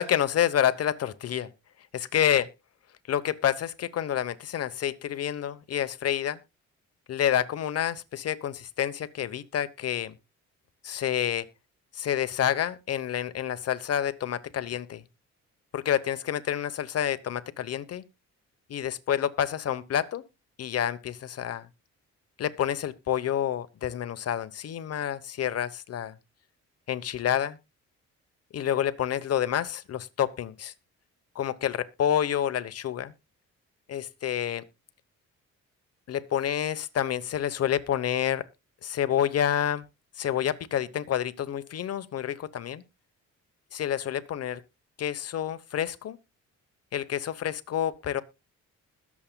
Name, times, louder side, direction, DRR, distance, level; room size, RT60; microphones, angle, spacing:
voice 1, 0.0-1.5 1.9-2.5 3.1-6.4 7.1-10.1 10.8-11.5 11.9-15.0 15.7-18.0 18.7-20.2 20.6-21.7 22.4-26.2 26.9-27.6 28.5-30.7 31.3-33.1 33.9-34.6 36.1-38.4 38.8-39.9 40.2-42.8 43.7-44.6 45.0-46.2 46.9-48.2, left 10 dB, 55° left, 1.0 m, -28 dB
21.0 x 7.2 x 2.2 m
cardioid pair, 90°, 30 cm